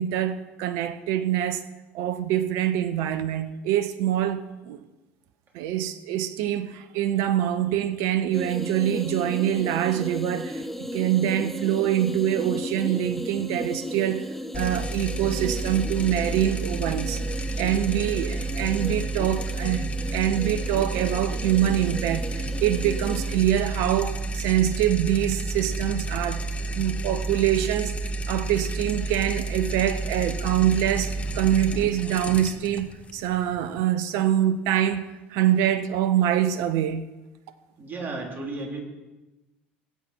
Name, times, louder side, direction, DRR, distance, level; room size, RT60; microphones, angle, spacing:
voice 1, 0.0-1.6 1.9-4.8 5.5-14.3 14.5-17.2 17.6-26.4 26.7-27.9 28.3-35.0 35.3-37.0, right 11 dB, 65° right, 0.8 m, -25 dB
sound 1, 8.3-23.4, equal, 5° left, 0.9 m, -36 dB
sound 2, 14.5-33.8, right 2 dB, 20° left, 1.6 m, -31 dB
voice 2, 37.8-38.8, right 3 dB, 35° right, 4.1 m, -33 dB
19.0 x 8.6 x 4.7 m
hypercardioid pair, 70°, 6 cm